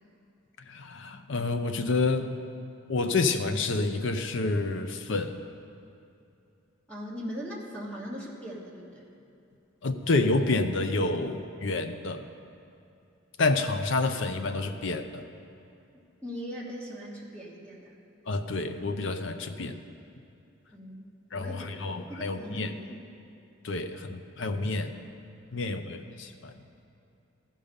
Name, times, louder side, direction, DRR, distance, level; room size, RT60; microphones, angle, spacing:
voice 1, 0.6-2.3 2.9-5.4 9.8-12.3 13.4-15.2 18.3-19.8 21.3-22.7 23.6-24.9 25.5-26.6, left 3 dB, 60° left, 8 dB, 0.6 m, -29 dB
voice 2, 6.9-9.1 16.2-18.0 20.7-21.0 21.3-23.1 25.5-25.9, equal, 5° left, -4 dB, 1.2 m, -40 dB
15.0 x 5.5 x 5.2 m, 2.7 s
head